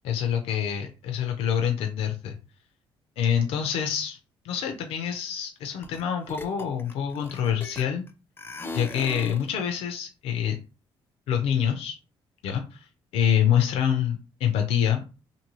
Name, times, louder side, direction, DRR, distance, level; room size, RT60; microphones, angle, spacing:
voice 1, 0.0-2.4 3.2-4.2 4.4-8.0 8.7-10.6 11.3-12.0 12.4-12.9 13.1-15.1, left 9 dB, 85° left, 4 dB, 0.5 m, -26 dB
sound 1, 5.8-6.0 6.3-8.1 8.4-9.5, left 3 dB, 20° left, 0.4 m, -37 dB
2.6 x 2.6 x 3.0 m, 0.32 s
cardioid pair, 115°, 10 cm